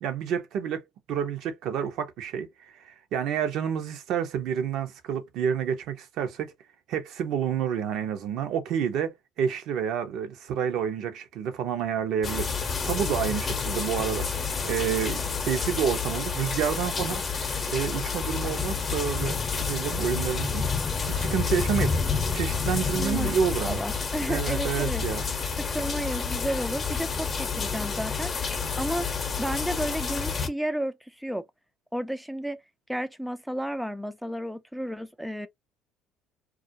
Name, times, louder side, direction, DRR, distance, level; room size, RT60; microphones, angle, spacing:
voice 1, 0.0-0.8 1.1-2.5 2.7-6.5 6.9-20.6 21.1-21.9 22.3-23.8 24.3-25.2, right 8 dB, 65° right, 0.7 m, -29 dB
sound 1, 12.2-30.5, left 5 dB, 35° left, 0.7 m, -29 dB
voice 2, 23.0-25.0 25.6-28.5 28.8-31.4 31.9-32.6 32.9-35.5, equal, ahead, 0.3 m, -32 dB
2.3 x 2.2 x 2.6 m
supercardioid pair, 80°, 0 cm